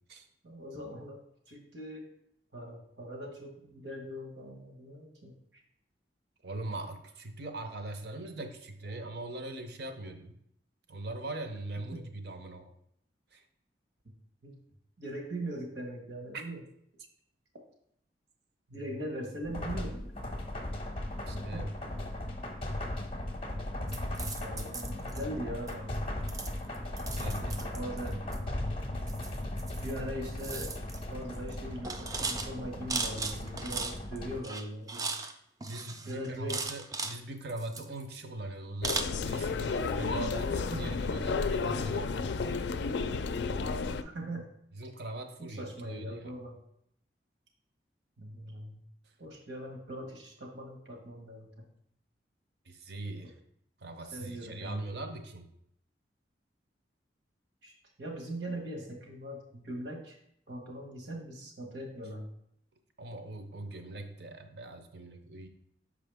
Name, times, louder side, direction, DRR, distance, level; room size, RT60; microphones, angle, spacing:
voice 1, 0.4-1.2 1.5-2.1 2.5-5.3 14.4-14.5 15.0-16.6 18.7-20.0 21.5-21.6 24.4-26.0 27.6-28.2 29.8-30.7 31.1-35.1 36.1-36.6 40.7-41.0 44.0-44.4 45.4-46.6 48.2-48.8 49.2-51.6 54.1-54.9 57.6-57.7 58.0-60.2 60.5-62.3, right 1 dB, 85° right, 0 dB, 1.4 m, -40 dB
voice 2, 6.4-10.4 10.9-12.7 13.3-13.4 16.3-16.4 21.3-21.7 26.9-28.2 35.6-42.3 44.7-46.3 52.7-53.3 53.8-55.5 63.0-65.5, right 2 dB, 65° right, 7 dB, 0.7 m, -41 dB
sound 1, 19.4-34.4, left 1 dB, 30° left, 0.6 m, -37 dB
sound 2, 23.9-25.2 25.7-26.0 26.3-28.4 29.1-30.0 30.2-31.0 31.3-31.5 31.8-34.2 34.4-35.3 35.6-37.2 37.5-38.2 38.8-39.0, right 4 dB, 20° right, 0.4 m, -37 dB
sound 3, 38.8-44.0, left 4 dB, 75° left, 0.4 m, -32 dB
6.0 x 4.9 x 3.5 m, 0.73 s
head